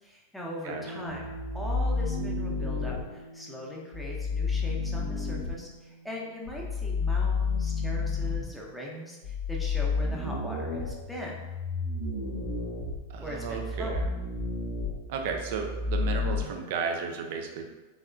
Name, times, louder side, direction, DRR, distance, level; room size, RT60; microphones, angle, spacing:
voice 1, 0.0-11.4 13.2-14.0, equal, ahead, -3 dB, 0.6 m, -40 dB
voice 2, 0.6-1.1 13.1-14.1 15.1-17.7, right 5 dB, 50° right, 3 dB, 0.4 m, -34 dB
sound 1, 0.7-10.4, equal, 65° left, 0.3 m, -48 dB
sound 2, 1.1-3.0 3.9-5.5 6.5-8.5 9.2-16.4, left 4 dB, 80° left, 0.8 m, -31 dB
3.5 x 2.3 x 2.3 m, 1.2 s
figure-of-eight pair, 90°, 0 cm